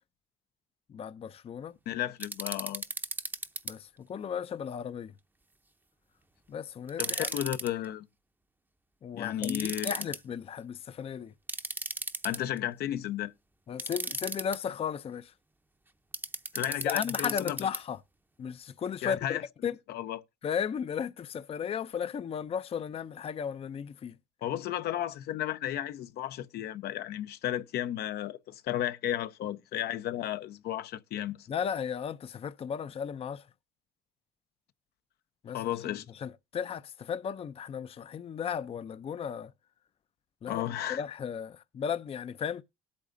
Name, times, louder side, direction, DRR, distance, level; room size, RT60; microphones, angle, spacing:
voice 1, 0.9-1.7 3.7-5.1 6.5-7.3 9.0-11.3 13.7-15.3 16.8-18.0 18.4-19.7 20.4-24.2 31.5-33.4 35.4-35.6 36.2-39.5 40.4-42.6, left 7 dB, 35° left, 0.5 m, -35 dB
voice 2, 1.9-2.8 7.0-8.1 9.1-9.9 12.2-13.3 16.5-17.6 19.0-19.4 19.9-20.2 24.4-31.5 35.5-36.0 40.5-41.0, left 12 dB, 70° left, 0.7 m, -33 dB
sound 1, 2.2-3.7 6.9-7.7 9.4-10.2 11.5-12.6 13.8-14.6 16.1-17.8, right 2 dB, 10° right, 0.7 m, -35 dB
18.5 x 8.6 x 2.6 m
cardioid pair, 110°, 17 cm